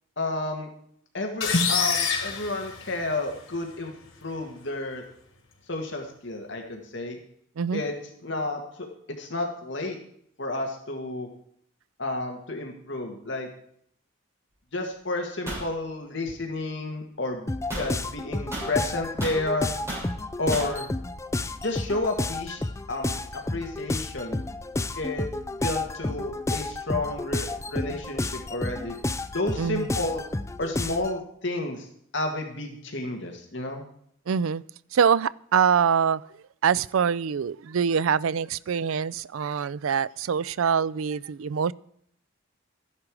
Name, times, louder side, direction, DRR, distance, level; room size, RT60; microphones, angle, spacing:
voice 1, 0.2-0.7 1.1-3.9 4.2-5.0 5.7-7.2 7.7-8.0 8.2-8.9 9.2-10.0 10.4-11.3 12.0-13.5 14.7-19.7 20.4-20.9 21.6-24.4 25.0-29.0 29.3-30.2 30.6-31.9 32.1-33.8, left 2 dB, 60° left, 1.9 m, -31 dB
sound 1, 1.4-3.4, left 6 dB, 90° left, 3.3 m, -27 dB
sound 2, 15.5-15.7 17.7-17.9 18.5-19.4 19.9-20.1 20.5-20.8, right 1 dB, 15° right, 6.8 m, -34 dB
sound 3, 17.5-31.2, left 2 dB, 15° left, 0.4 m, -31 dB
voice 2, 34.3-34.6 34.9-36.2 36.6-41.7, right 7 dB, 80° right, 0.4 m, -24 dB
14.0 x 11.0 x 4.8 m
head